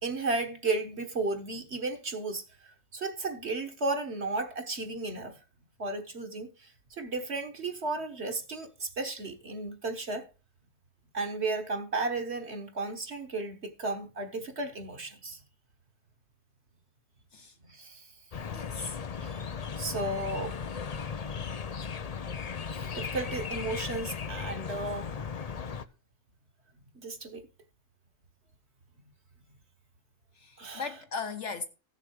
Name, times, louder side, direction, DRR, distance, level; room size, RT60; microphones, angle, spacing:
voice 1, 0.0-5.4 5.8-10.3 11.1-15.4 17.7-18.1 19.2-19.5 19.8-20.6 22.7-25.3 26.9-27.5 30.6-30.8, right 3 dB, 45° right, 1.6 m, -34 dB
sound 1, 18.3-25.8, left 6 dB, 80° left, 0.3 m, -36 dB
voice 2, 18.5-19.0 30.3-31.6, left 4 dB, 55° left, 1.1 m, -38 dB
14.5 x 6.8 x 4.7 m
omnidirectional pair, 1.7 m